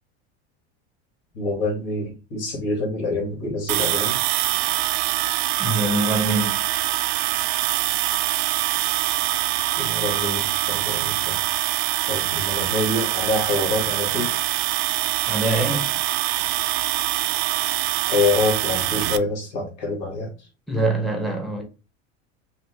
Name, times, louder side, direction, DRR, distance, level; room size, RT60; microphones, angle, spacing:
voice 1, 1.3-4.2 9.8-11.4 12.1-14.3 18.0-20.3, left 3 dB, 65° left, 2.5 m, -26 dB
sound 1, 3.7-19.2, right 16 dB, 70° right, 0.6 m, -24 dB
voice 2, 5.6-6.6 15.3-15.9 20.7-21.6, right 2 dB, ahead, 0.9 m, -24 dB
5.6 x 2.5 x 3.4 m
supercardioid pair, 130°, 33 cm